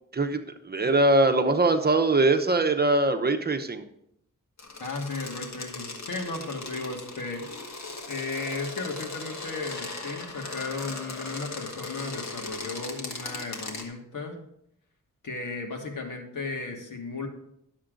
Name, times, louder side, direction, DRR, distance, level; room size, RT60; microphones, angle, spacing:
voice 1, 0.1-3.8, right 2 dB, 30° right, 7 dB, 0.8 m, -22 dB
sound 1, 4.6-13.8, left 3 dB, 60° left, 1.6 m, -38 dB
voice 2, 4.8-7.5 8.1-14.4 15.2-17.3, left 3 dB, 80° left, 2 dB, 1.8 m, -35 dB
11.5 x 7.2 x 3.9 m, 0.74 s
wide cardioid pair, 120°, 31 cm